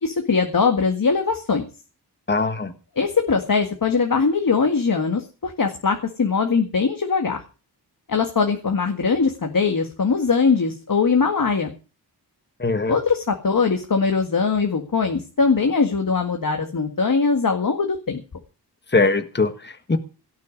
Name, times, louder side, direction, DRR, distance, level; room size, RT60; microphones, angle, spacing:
voice 1, 0.0-1.7 3.0-7.4 8.1-11.7 12.9-18.2, left 5 dB, 55° left, 4 dB, 2.0 m, -21 dB
voice 2, 2.3-2.7 12.6-13.0 18.9-20.0, left 3 dB, 25° left, 9 dB, 1.5 m, -21 dB
17.5 x 6.4 x 9.8 m, 0.36 s
wide cardioid pair, 110°, 41 cm